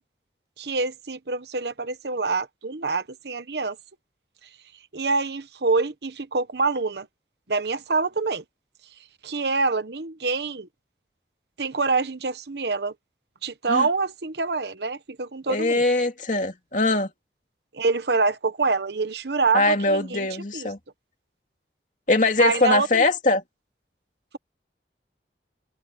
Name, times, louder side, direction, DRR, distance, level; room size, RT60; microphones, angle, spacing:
voice 1, 0.6-3.8 4.9-7.1 7.5-8.4 9.2-10.7 11.6-12.9 13.4-15.8 17.7-20.3 20.5-20.7 22.4-22.9, right 4 dB, 75° right, 1.1 m, -26 dB
voice 2, 15.5-17.1 19.5-20.8 22.1-23.4, left 2 dB, 45° left, 2.7 m, -22 dB
head